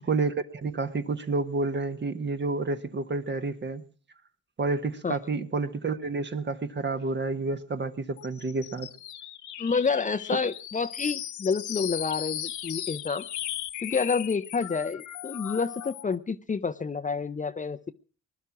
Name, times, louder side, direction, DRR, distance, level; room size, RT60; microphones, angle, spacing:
voice 1, 0.1-3.8 4.6-8.9, right 3 dB, 35° right, 9 dB, 1.5 m, -29 dB
sound 1, 8.2-16.2, left 12 dB, 75° left, 1.0 m, -37 dB
voice 2, 9.6-13.3 13.8-17.9, left 5 dB, 25° left, 11 dB, 0.7 m, -29 dB
20.5 x 11.5 x 6.0 m, 0.41 s
cardioid pair, 90°, 30 cm